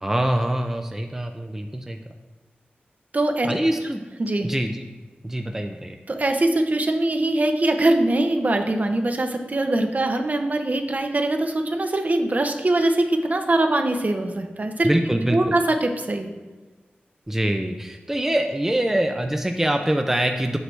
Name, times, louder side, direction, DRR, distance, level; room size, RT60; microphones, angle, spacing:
voice 1, 0.0-2.0 3.4-4.0 4.4-4.9 5.2-6.0 14.8-15.4 17.3-20.6, right 1 dB, 10° right, 4 dB, 0.5 m, -24 dB
voice 2, 3.1-3.5 4.2-4.5 6.1-14.9 15.3-16.3, right 2 dB, 45° right, 5 dB, 0.8 m, -22 dB
8.1 x 6.0 x 3.3 m, 1.3 s
wide cardioid pair, 65°, 4 cm